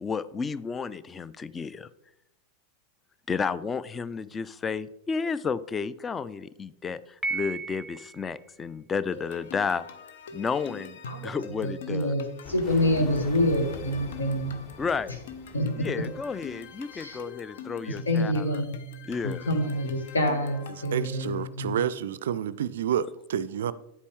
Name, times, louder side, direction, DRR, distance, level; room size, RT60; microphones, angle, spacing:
voice 1, 0.0-1.9 3.3-9.8 10.3-11.0 11.2-12.1 14.8-15.2 15.8-18.6 19.0-19.5, left 5 dB, 20° left, 0.3 m, -32 dB
Piano, 7.2-8.3, right 3 dB, 5° right, 0.9 m, -33 dB
sound 1, 9.1-21.4, left 2 dB, 55° left, 0.6 m, -43 dB
voice 2, 11.6-14.6 15.5-15.7 16.9-17.2 17.9-18.7 19.2-21.8, left 1 dB, 75° left, 1.1 m, -27 dB
sound 2, 12.4-17.1, left 3 dB, 35° left, 1.5 m, -44 dB
voice 3, 20.9-23.7, right 9 dB, 60° right, 0.3 m, -29 dB
9.7 x 8.2 x 3.2 m
figure-of-eight pair, 90°, 0 cm